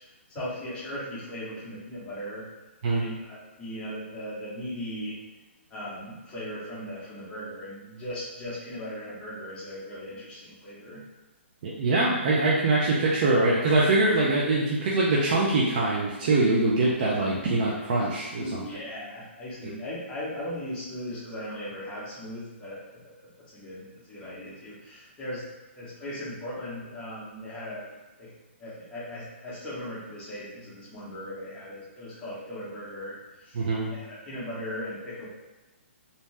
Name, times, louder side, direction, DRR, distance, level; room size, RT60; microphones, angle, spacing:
voice 1, 0.3-2.5 2.9-5.2 5.7-11.0 18.3-25.5 25.7-27.9 28.2-28.3 28.6-35.3, equal, 15° left, -8 dB, 0.8 m, -38 dB
voice 2, 11.6-18.6 19.6-19.7 33.5-33.9, right 2 dB, 45° right, -5 dB, 0.4 m, -23 dB
2.7 x 2.1 x 3.1 m, 1.1 s
hypercardioid pair, 155°, 7 cm